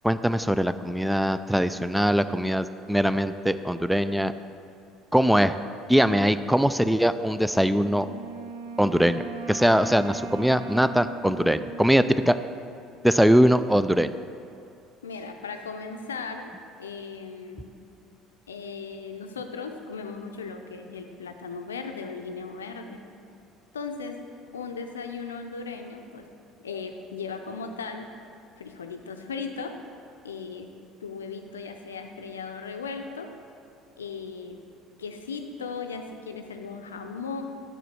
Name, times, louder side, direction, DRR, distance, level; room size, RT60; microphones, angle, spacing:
voice 1, 0.0-4.3 5.1-5.5 5.9-8.1 8.8-9.2 9.5-12.4 13.0-14.1, equal, 5° right, 12 dB, 0.3 m, -22 dB
Wind instrument woodwind instrument, 7.7-13.1, right 4 dB, 70° right, 0.4 m, -39 dB
voice 2, 15.0-16.5 16.8-17.7 18.5-23.0 23.7-24.2 24.5-26.2 26.6-28.1 28.6-29.7 30.2-30.7 31.0-33.3 34.0-34.6 35.0-37.4, left 5 dB, 85° left, 5 dB, 0.5 m, -37 dB
6.7 x 6.1 x 5.9 m, 2.5 s
hypercardioid pair, 65°, 0 cm